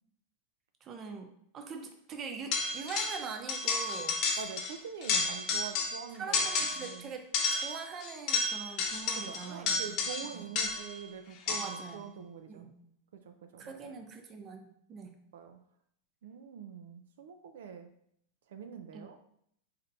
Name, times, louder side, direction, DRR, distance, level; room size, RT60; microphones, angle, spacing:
voice 1, 0.8-4.4 5.1-5.3 6.1-10.0 10.3-10.4 11.5-12.1 12.5-12.7 13.6-15.2 18.9-19.1, right 5 dB, 30° right, 5 dB, 0.6 m, -43 dB
sound 1, 2.5-3.2 3.5-4.7 5.0-6.0 6.3-6.9 7.3-11.0 11.5-11.9, left 4 dB, 45° left, 0.8 m, -31 dB
voice 2, 4.4-6.5 6.8-7.1 9.2-12.7 13.3-14.0 15.3-15.6 16.2-17.9 18.5-19.2, right 7 dB, 80° right, 7 dB, 0.4 m, -45 dB
4.0 x 3.2 x 2.7 m, 0.71 s
supercardioid pair, 125°, 0 cm